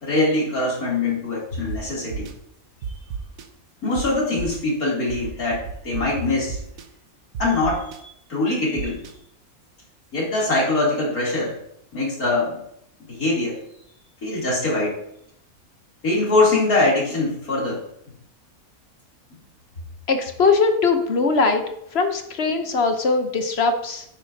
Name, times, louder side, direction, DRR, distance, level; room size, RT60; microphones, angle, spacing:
voice 1, 0.0-2.3 2.9-3.0 3.8-6.6 7.4-9.0 10.1-11.5 11.9-12.6 13.1-13.6 14.2-14.9 16.0-17.8, left 2 dB, 85° left, -5 dB, 3.6 m, -23 dB
sound 1, 1.7-1.8 2.1-2.3 2.8-3.4 3.9-4.0 4.4-4.6 5.1-6.0 6.5-6.8 7.3-8.0 8.8-9.1, right 6 dB, 70° right, 1.2 m, -31 dB
voice 2, 20.1-21.6 21.9-24.0, left 4 dB, 50° left, 7 dB, 1.0 m, -20 dB
9.6 x 8.7 x 2.8 m, 0.74 s
omnidirectional pair, 1.5 m